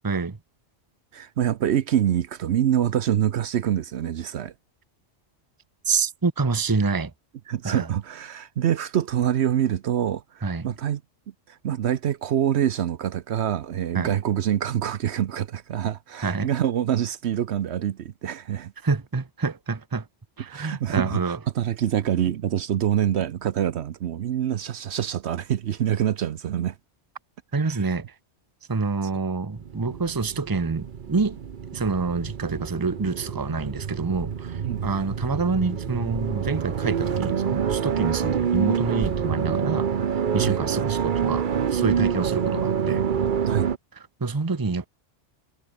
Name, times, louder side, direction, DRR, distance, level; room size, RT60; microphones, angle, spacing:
voice 1, 0.0-0.4 5.9-7.1 7.6-7.9 10.4-10.7 13.9-14.1 16.2-16.5 18.8-20.0 20.4-21.4 27.5-28.1 28.7-31.4 31.7-39.9 40.3-43.0 44.0-44.9, right 4 dB, 20° right, 0.9 m, -27 dB
voice 2, 1.1-4.5 7.5-11.0 11.5-18.7 20.5-26.7 34.6-34.8 40.3-40.6 43.5-43.7, right 10 dB, 70° right, 1.0 m, -25 dB
sound 1, 29.6-43.8, right 7 dB, 50° right, 0.9 m, -27 dB
omnidirectional pair, 1.2 m